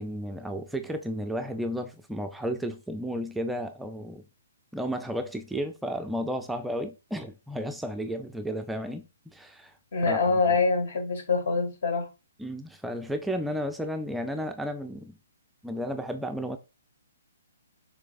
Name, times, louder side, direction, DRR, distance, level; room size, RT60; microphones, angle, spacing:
voice 1, 0.0-4.2 4.7-9.0 9.3-9.7 10.1-10.2 12.4-15.2 15.6-16.6, equal, 5° right, 0.4 m, -33 dB
voice 2, 9.9-12.1, left 4 dB, 65° left, 1.9 m, -25 dB
6.5 x 3.2 x 2.5 m
hypercardioid pair, 135°, 0 cm